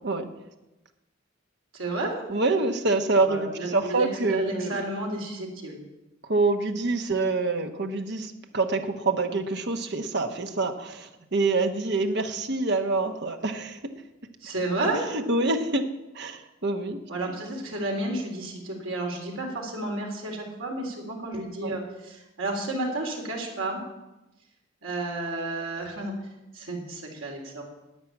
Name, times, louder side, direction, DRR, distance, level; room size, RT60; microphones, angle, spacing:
voice 1, 1.7-2.2 3.3-5.8 14.4-15.0 17.1-23.8 24.8-26.1 26.5-27.6, right 2 dB, 80° right, 0 dB, 3.6 m, -31 dB
voice 2, 2.3-4.8 6.2-13.8 15.1-15.9 16.1-17.0 21.6-21.7, right 3 dB, 55° right, 6 dB, 1.3 m, -26 dB
11.0 x 9.5 x 8.6 m, 0.99 s
head